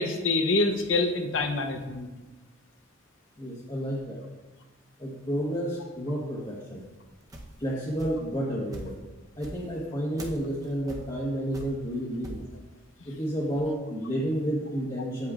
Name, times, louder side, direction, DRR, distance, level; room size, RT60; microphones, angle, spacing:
voice 1, 0.0-2.1, left 2 dB, 75° left, 5 dB, 0.8 m, -26 dB
voice 2, 3.4-4.2 5.0-6.8 7.6-8.9 9.4-12.4 13.0-15.3, equal, 25° left, -5 dB, 1.2 m, -31 dB
sound 1, 6.8-8.4 8.7-12.5, right 1 dB, 20° right, 0.8 m, -43 dB
8.5 x 8.2 x 2.5 m, 1.2 s
head